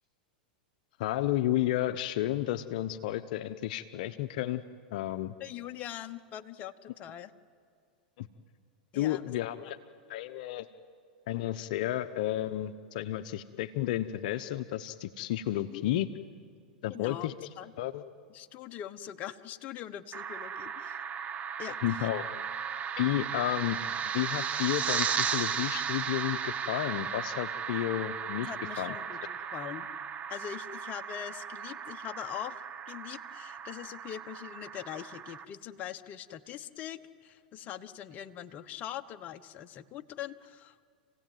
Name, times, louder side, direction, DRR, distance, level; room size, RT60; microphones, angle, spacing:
voice 1, 1.0-4.6 4.9-5.3 8.2-8.3 8.9-9.8 10.1-10.7 11.3-16.1 16.8-17.3 17.8-18.0 21.8-22.2 23.0-23.8 24.1-28.5 28.8-28.9, left 13 dB, 60° left, 10 dB, 0.9 m, -32 dB
voice 2, 5.4-7.3 8.9-9.3 15.7-15.8 16.9-17.7 18.3-21.0 21.6-22.1 28.5-29.2 29.5-29.9 30.3-40.9, left 11 dB, 35° left, 8 dB, 1.1 m, -42 dB
sound 1, 20.1-35.4, right 7 dB, 30° right, 1.1 m, -35 dB
29.0 x 17.0 x 9.3 m, 2.2 s
hypercardioid pair, 110°, 5 cm